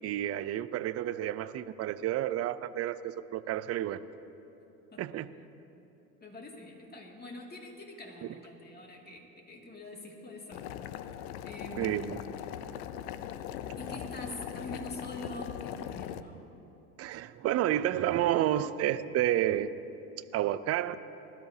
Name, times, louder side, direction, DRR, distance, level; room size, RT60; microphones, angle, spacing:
voice 1, 0.0-4.0 5.0-5.3 11.8-12.2 13.7-13.8 17.0-19.7 20.3-21.0, right 12 dB, 35° right, 14 dB, 0.5 m, -30 dB
voice 2, 6.2-9.2 9.5-10.6 11.4-12.2 13.8-16.5, left 1 dB, 20° left, 0 dB, 2.3 m, -44 dB
Boiling, 10.5-16.2, left 10 dB, 75° left, 0.7 m, -40 dB
20.0 x 13.0 x 2.8 m, 3.0 s
hypercardioid pair, 80°, 45 cm